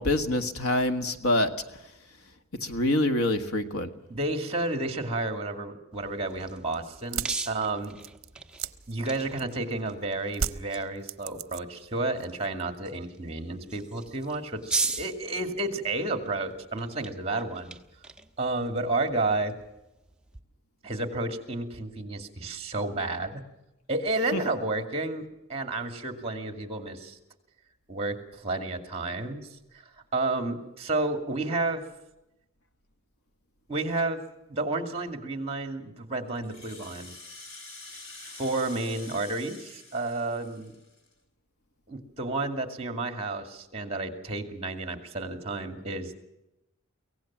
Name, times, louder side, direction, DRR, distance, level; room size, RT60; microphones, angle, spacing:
voice 1, 0.0-1.5 2.6-3.9 24.3-24.4, left 1 dB, 85° left, 7 dB, 1.7 m, -25 dB
voice 2, 4.1-8.0 8.9-17.8 18.4-19.6 20.8-23.4 23.9-27.2 27.9-29.5 30.1-31.8 33.7-34.2 34.5-37.1 38.2-40.7 41.9-46.1, right 2 dB, 30° right, 6 dB, 2.3 m, -31 dB
sound 1, 5.9-20.4, right 3 dB, 5° right, 1.1 m, -40 dB
sound 2, 7.0-9.7 10.3-11.9 12.2-12.8, right 6 dB, 65° right, 0.8 m, -35 dB
Rattle (instrument), 36.4-41.1, left 3 dB, 65° left, 3.5 m, -47 dB
24.0 x 17.5 x 7.3 m, 0.93 s
head